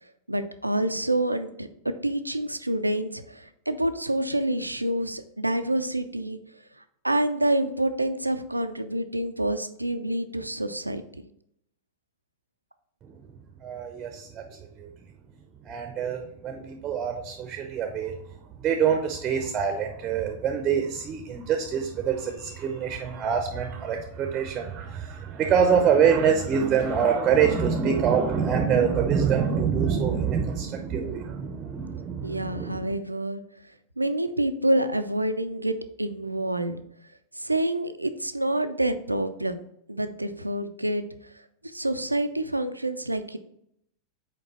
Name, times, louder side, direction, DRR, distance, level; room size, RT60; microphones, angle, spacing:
voice 1, 0.3-6.4 7.0-11.0 32.2-33.4 34.0-36.8 37.4-39.6 39.9-41.3 41.6-43.4, right 1 dB, 85° right, 10 dB, 0.4 m, -27 dB
voice 2, 13.6-14.4 14.8-14.9 15.7-18.1 18.6-32.9, right 7 dB, 25° right, 4 dB, 0.7 m, -25 dB
5.1 x 4.6 x 4.2 m, 0.73 s
figure-of-eight pair, 90°, 0 cm